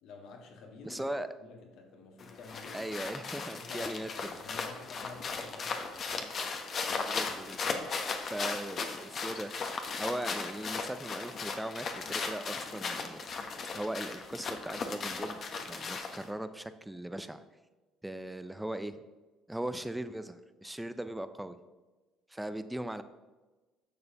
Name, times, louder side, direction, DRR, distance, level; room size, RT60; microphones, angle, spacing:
voice 1, 0.0-1.0 1.4-2.9 3.3-4.0 4.4-5.9, left 4 dB, 65° left, 2 dB, 1.8 m, -49 dB
voice 2, 0.8-1.3 2.7-4.1 7.0-7.6 7.9-9.5 10.0-13.3 13.7-17.4 18.0-19.0 19.5-21.6 22.3-23.0, right 1 dB, 5° right, 11 dB, 0.6 m, -39 dB
sound 1, 2.2-16.3, left 4 dB, 45° left, 1.1 m, -37 dB
10.5 x 6.7 x 3.0 m, 1.2 s
hypercardioid pair, 65°, 0 cm